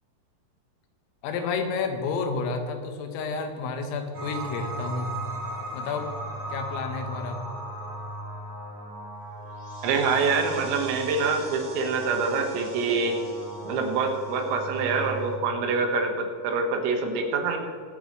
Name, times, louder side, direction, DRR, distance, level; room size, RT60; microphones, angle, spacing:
voice 1, 1.2-5.2 5.7-6.1 6.5-7.4, left 4 dB, 85° left, 5 dB, 3.9 m, -30 dB
sound 1, 4.1-15.4, right 1 dB, 35° right, 3.4 m, -37 dB
voice 2, 9.8-13.2 13.7-17.6, right 4 dB, 85° right, 3 dB, 4.1 m, -25 dB
21.5 x 9.3 x 3.2 m, 2.2 s
omnidirectional pair, 5.9 m